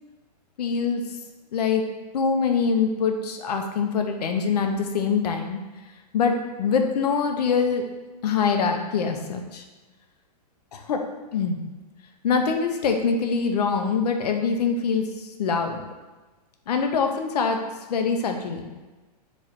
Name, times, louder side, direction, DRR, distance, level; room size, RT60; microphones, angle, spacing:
voice 1, 0.6-1.0 1.5-1.8 2.1-5.6 6.1-7.8 8.2-9.6 10.7-11.0 11.3-11.6 12.2-15.8 16.7-17.6 17.9-18.7, left 5 dB, 70° left, 5 dB, 0.6 m, -24 dB
3.2 x 2.6 x 4.0 m, 1.2 s
hypercardioid pair, 165°, 21 cm